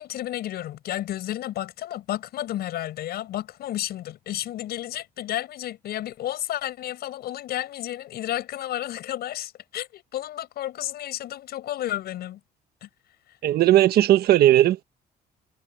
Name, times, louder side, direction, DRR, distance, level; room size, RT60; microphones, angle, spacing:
voice 1, 0.0-12.4 12.8-12.9, left 13 dB, 70° left, 7.4 m, -32 dB
voice 2, 13.4-14.8, right 13 dB, 70° right, 1.4 m, -17 dB
cardioid pair, 110°, 17 cm